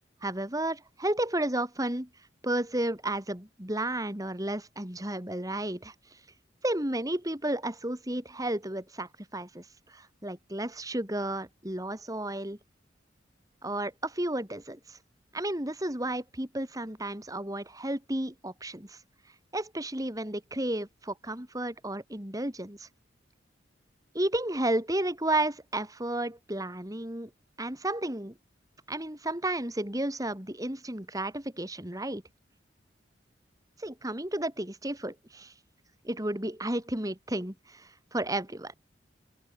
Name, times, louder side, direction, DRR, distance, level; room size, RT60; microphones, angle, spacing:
voice 1, 0.2-2.1 2.4-5.9 6.6-12.6 13.6-15.0 15.3-19.0 19.5-22.9 24.1-27.3 27.6-28.4 28.9-32.2 33.8-35.5 36.0-38.7, right 1 dB, 20° right, 2.9 m, -32 dB
open air
head